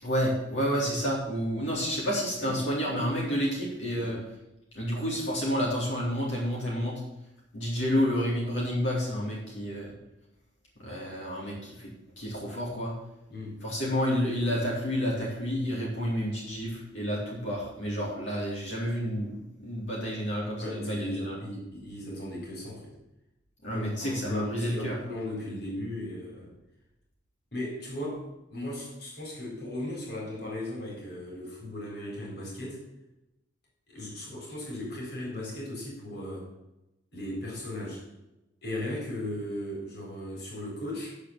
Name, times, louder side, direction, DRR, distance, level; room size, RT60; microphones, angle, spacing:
voice 1, 0.0-4.2 4.7-7.0 7.5-9.9 10.8-12.9 13.6-21.4 23.6-25.0, equal, 85° left, -5 dB, 3.6 m, -30 dB
voice 2, 13.3-13.6 20.6-22.9 23.7-26.5 27.5-32.8 33.9-36.5 37.1-38.1 38.6-41.2, left 1 dB, 60° left, -2 dB, 4.3 m, -37 dB
9.9 x 7.0 x 7.3 m, 0.93 s
head